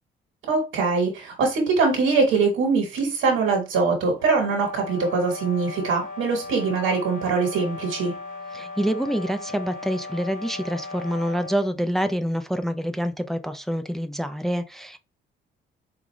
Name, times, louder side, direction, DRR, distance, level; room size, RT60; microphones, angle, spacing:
voice 1, 0.5-8.1, right 4 dB, 90° right, 1.2 m, -22 dB
sound 1, 4.2-11.7, left 3 dB, 45° left, 1.4 m, -37 dB
voice 2, 8.5-15.0, equal, ahead, 0.5 m, -26 dB
4.9 x 2.5 x 3.1 m
cardioid pair, 90°, 20 cm